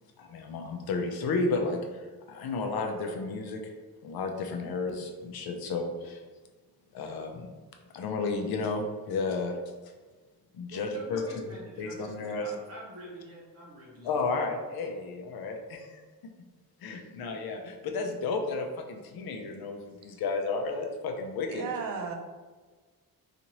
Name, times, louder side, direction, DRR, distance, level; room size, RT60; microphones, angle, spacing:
voice 1, 0.2-3.7 4.0-6.2 6.9-7.5 7.9-9.6 10.5-12.5 14.0-16.0 16.8-21.6, left 3 dB, 75° left, 3 dB, 0.5 m, -32 dB
voice 2, 10.7-14.2, right 1 dB, 40° right, -4 dB, 0.9 m, -45 dB
voice 3, 21.5-22.2, right 5 dB, 65° right, 3 dB, 0.5 m, -34 dB
2.7 x 2.5 x 2.9 m, 1.3 s
wide cardioid pair, 160°, 36 cm